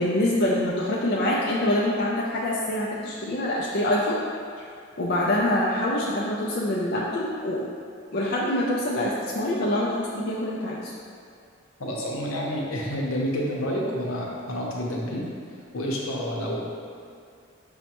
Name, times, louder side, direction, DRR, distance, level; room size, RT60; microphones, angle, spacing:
voice 1, 0.0-4.1 5.0-7.6 8.1-10.9, left 1 dB, 50° left, -5 dB, 0.4 m, -25 dB
voice 2, 11.8-15.2 15.7-16.6, equal, 85° left, -3 dB, 0.7 m, -29 dB
6.2 x 2.1 x 2.9 m, 2.3 s
head